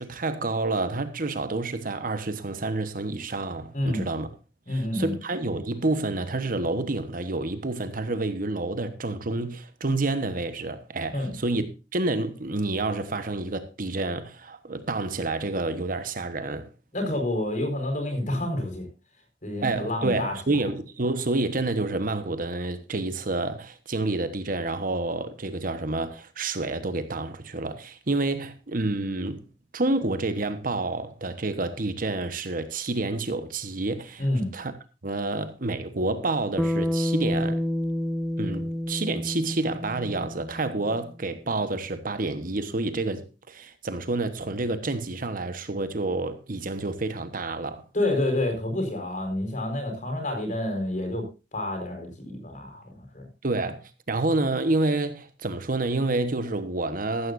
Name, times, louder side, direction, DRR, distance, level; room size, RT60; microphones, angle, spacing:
voice 1, 0.0-4.3 4.7-16.7 19.6-29.4 29.7-34.7 35.0-37.6 38.4-47.8 53.4-57.3, right 2 dB, 50° right, 1.2 m, -29 dB
voice 2, 3.7-4.0 4.7-5.1 11.1-11.3 16.9-18.9 19.4-20.6 34.2-34.5 47.9-53.3, left 1 dB, 45° left, 4.6 m, -28 dB
Bass guitar, 36.6-41.0, left 1 dB, ahead, 0.6 m, -29 dB
14.5 x 13.5 x 2.6 m
head